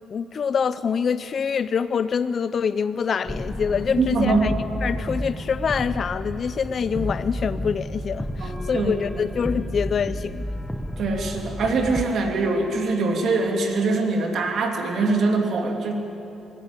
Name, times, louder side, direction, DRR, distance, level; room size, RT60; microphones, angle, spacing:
voice 1, 0.1-4.5 4.8-10.5, left 6 dB, 50° left, 14 dB, 0.5 m, -25 dB
sound 1, 3.3-12.0, equal, 5° left, 1.1 m, -31 dB
voice 2, 4.0-4.5 8.4-9.2 11.0-15.9, right 3 dB, 65° right, 2 dB, 3.0 m, -23 dB
22.5 x 14.5 x 8.3 m, 3.0 s
cardioid pair, 90°, 0 cm